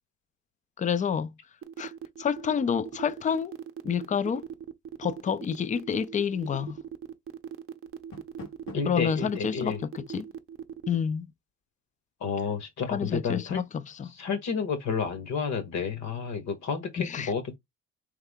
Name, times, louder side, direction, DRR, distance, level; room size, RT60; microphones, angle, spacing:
voice 1, 0.8-1.3 1.8-1.9 2.2-3.5 3.8-4.4 5.0-6.8 8.9-10.3 10.9-11.3 12.9-14.1 17.0-17.3, left 7 dB, 25° left, 0.3 m, -28 dB
sound 1, 1.6-11.0, right 8 dB, 45° right, 0.6 m, -40 dB
Door, 7.8-9.1, left 3 dB, 85° left, 1.9 m, -46 dB
voice 2, 8.7-9.8 12.2-13.6 14.1-17.6, left 6 dB, 65° left, 1.3 m, -31 dB
3.5 x 3.5 x 3.5 m
cardioid pair, 90°, 30 cm